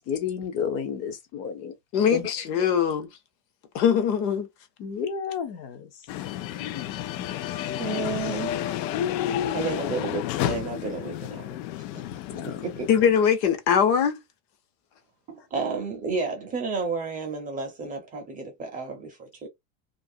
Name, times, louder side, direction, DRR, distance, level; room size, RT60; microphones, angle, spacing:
voice 1, 0.1-1.7 4.8-5.9 6.5-7.0 8.9-9.7 12.3-12.6, left 7 dB, 30° left, 0.5 m, -31 dB
voice 2, 1.9-3.1 3.7-4.5 7.2-7.3 7.9-8.0 12.9-14.2, left 8 dB, 60° left, 1.0 m, -22 dB
sound 1, 6.1-13.2, left 13 dB, 85° left, 0.6 m, -32 dB
voice 3, 7.8-8.5 9.5-11.6 12.4-12.9 15.3-19.5, right 4 dB, 15° right, 0.6 m, -31 dB
2.8 x 2.5 x 2.6 m
supercardioid pair, 160°, 50 cm